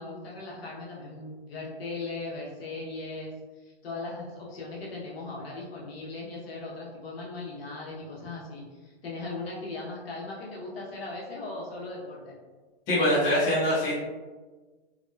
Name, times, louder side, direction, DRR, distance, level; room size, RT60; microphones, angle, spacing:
voice 1, 0.0-3.3 3.6-12.3, left 3 dB, 65° left, -4 dB, 0.9 m, -38 dB
voice 2, 12.9-13.9, left 1 dB, 10° left, -11 dB, 0.4 m, -23 dB
2.8 x 2.0 x 2.3 m, 1.3 s
hypercardioid pair, 155°, 32 cm